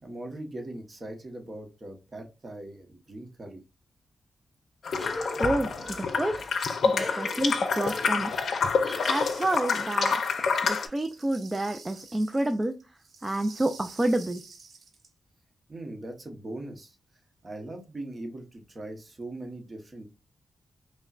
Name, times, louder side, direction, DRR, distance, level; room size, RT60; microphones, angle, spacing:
voice 1, 0.0-3.6 15.7-17.0 17.4-20.0, right 1 dB, 35° right, 4 dB, 1.0 m, -40 dB
sound 1, 4.9-10.9, left 5 dB, 70° left, 0.5 m, -27 dB
Cough, 4.9-10.7, left 1 dB, 5° right, 1.7 m, -41 dB
voice 2, 5.4-6.5 6.8-8.3 9.0-10.2 10.6-12.7 13.2-14.4, right 1 dB, 20° right, 7 dB, 0.4 m, -29 dB
sound 2, 9.0-10.2 10.7-15.1, right 4 dB, 70° right, 0.8 m, -49 dB
5.2 x 2.1 x 2.4 m, 0.28 s
cardioid pair, 75°, 0 cm